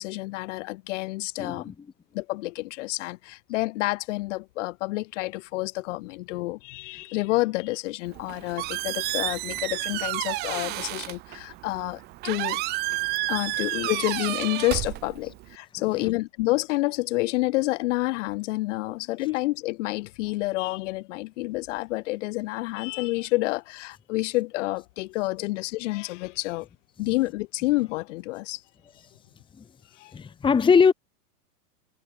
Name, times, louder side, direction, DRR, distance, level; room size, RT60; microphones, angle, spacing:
voice 1, 0.0-1.7 2.1-12.6 13.3-26.7 27.0-28.6 30.0-30.1, left 21 dB, 50° left, 7.1 m, -29 dB
voice 2, 1.4-1.7 15.9-16.1 29.6-29.7 30.1-30.9, left 6 dB, 10° left, 2.0 m, -21 dB
Squeak, 8.1-15.5, right 20 dB, 20° right, 0.8 m, -31 dB
hypercardioid pair, 150°, 48 cm